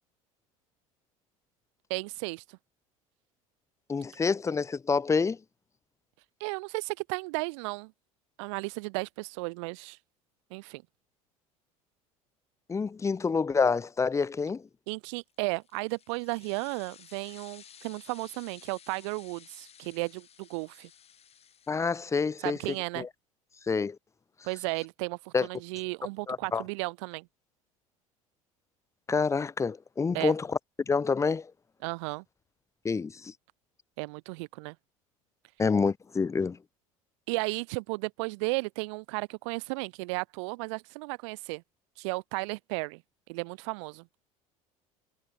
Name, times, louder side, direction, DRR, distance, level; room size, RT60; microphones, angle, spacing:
voice 1, 1.9-2.6 6.4-7.9 8.4-10.0 10.5-10.8 14.9-20.9 22.4-23.1 24.4-27.3 30.1-30.3 31.8-32.2 34.0-34.7 37.3-41.6 42.0-43.0 43.3-44.1, right 29 dB, 55° right, 0.5 m, -34 dB
voice 2, 3.9-5.4 12.7-14.7 21.7-22.6 23.0-23.1 23.7-24.0 25.3-25.5 26.3-26.6 29.1-30.6 30.9-31.5 32.8-33.3 35.6-36.6, left 5 dB, 15° left, 0.6 m, -27 dB
sound 1, 15.3-22.3, left 8 dB, 35° left, 6.5 m, -55 dB
figure-of-eight pair, 65°, 18 cm